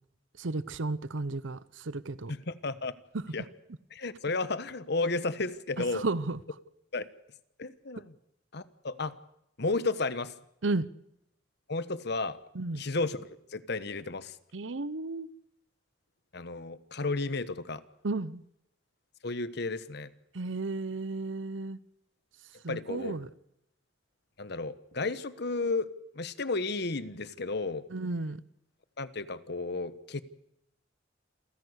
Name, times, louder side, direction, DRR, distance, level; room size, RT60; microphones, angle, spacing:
voice 1, 0.4-2.3 5.9-6.4 10.6-10.9 12.5-12.8 14.5-15.3 18.0-18.4 20.3-21.8 22.6-23.3 27.9-28.4, right 3 dB, 85° right, 0.8 m, -33 dB
voice 2, 2.3-2.9 3.3-3.4 3.9-6.0 6.9-7.0 7.6-8.1 8.5-9.2 9.6-10.3 11.7-12.4 12.7-14.4 16.3-17.8 19.2-20.1 22.7-23.1 24.4-25.9 26.1-27.9 29.0-30.2, left 3 dB, 60° left, 1.2 m, -33 dB
28.0 x 16.0 x 8.2 m
head